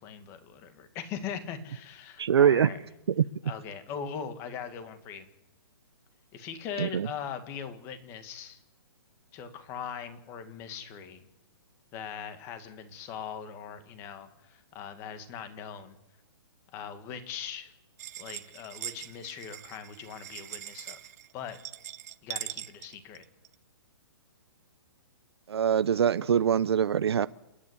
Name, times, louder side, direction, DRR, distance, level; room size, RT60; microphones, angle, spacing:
voice 1, 0.0-2.8 3.4-5.3 6.3-8.6 9.3-11.3 11.9-16.0 16.7-17.7 18.2-21.0 21.3-21.6 22.2-23.2, left 7 dB, 20° left, 9 dB, 1.9 m, -40 dB
voice 2, 2.2-2.7 3.2-3.3 6.8-7.1 25.5-27.3, right 8 dB, 70° right, 14 dB, 0.7 m, -23 dB
sound 1, 18.0-23.5, right 12 dB, 35° right, 0.8 m, -42 dB
29.0 x 9.9 x 9.7 m, 1.0 s
hypercardioid pair, 165°, 14 cm